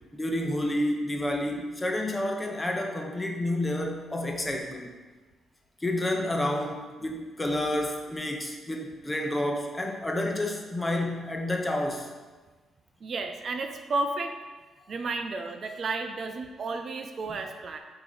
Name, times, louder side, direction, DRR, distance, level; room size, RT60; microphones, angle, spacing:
voice 1, 0.1-4.9 5.8-12.1 17.3-17.4, left 1 dB, 15° left, 2 dB, 0.9 m, -30 dB
voice 2, 13.0-14.4 14.9-17.8, right 3 dB, 50° right, 6 dB, 0.4 m, -32 dB
8.4 x 2.9 x 4.0 m, 1.3 s
cardioid pair, 95°, 0 cm